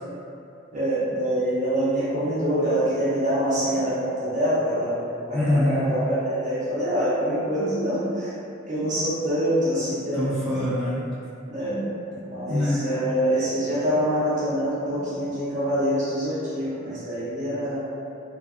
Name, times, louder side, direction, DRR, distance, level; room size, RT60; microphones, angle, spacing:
voice 1, 0.7-5.0 5.3-8.3 8.7-10.6 11.5-11.8 12.2-17.8, equal, 40° right, -10 dB, 0.6 m, -25 dB
voice 2, 5.3-5.9 10.1-11.1 12.5-12.8, left 1 dB, ahead, -14 dB, 0.5 m, -24 dB
2.4 x 2.2 x 2.3 m, 2.6 s
head